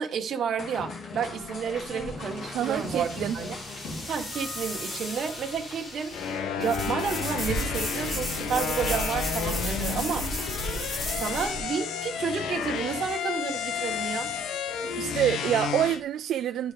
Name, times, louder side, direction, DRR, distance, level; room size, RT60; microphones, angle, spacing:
voice 1, 0.0-3.5 4.1-6.1 6.6-10.3 10.7-14.3, right 6 dB, 50° right, 1.4 m, -31 dB
sound 1, 0.6-6.3, left 3 dB, 60° left, 2.5 m, -40 dB
sound 2, 1.2-11.6, left 1 dB, 30° left, 5.0 m, -34 dB
voice 2, 2.5-3.4 14.7-16.7, right 11 dB, 75° right, 0.4 m, -27 dB
sound 3, 6.1-16.0, left 7 dB, 90° left, 0.9 m, -32 dB
11.0 x 4.7 x 5.1 m
cardioid pair, 145°, 0 cm